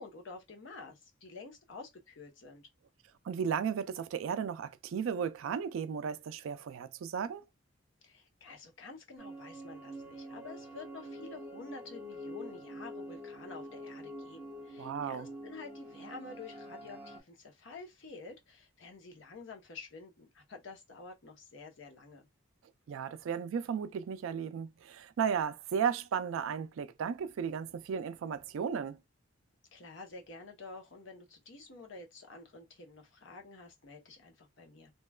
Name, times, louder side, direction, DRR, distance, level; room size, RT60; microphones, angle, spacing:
voice 1, 0.0-2.7 8.0-22.3 29.7-34.9, left 3 dB, 65° left, 0.8 m, -49 dB
voice 2, 3.2-7.4 14.8-15.3 22.9-29.0, right 7 dB, 75° right, 0.3 m, -35 dB
sound 1, 9.2-17.2, equal, 5° right, 0.7 m, -46 dB
3.0 x 2.2 x 2.2 m
head